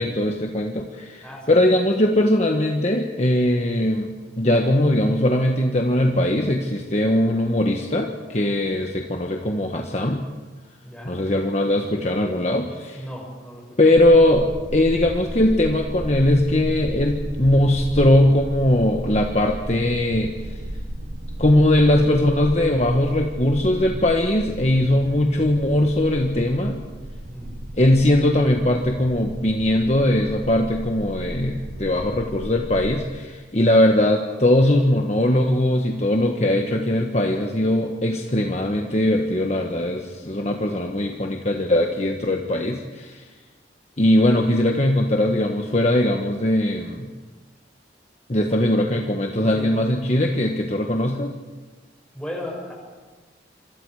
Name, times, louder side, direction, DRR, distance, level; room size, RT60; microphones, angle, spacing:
voice 1, 0.0-10.2 11.0-13.0 13.8-14.5 14.7-20.6 21.4-26.8 27.7-43.2 44.0-47.1 48.3-51.3, left 1 dB, 35° left, 2 dB, 1.4 m, -20 dB
voice 2, 1.2-1.6 10.8-11.2 12.9-13.9 27.3-27.5 49.5-49.7 52.1-52.7, left 1 dB, 5° left, -2 dB, 6.8 m, -35 dB
sound 1, 14.0-33.0, right 1 dB, 65° right, 1.7 m, -34 dB
26.5 x 25.0 x 5.0 m, 1.3 s
head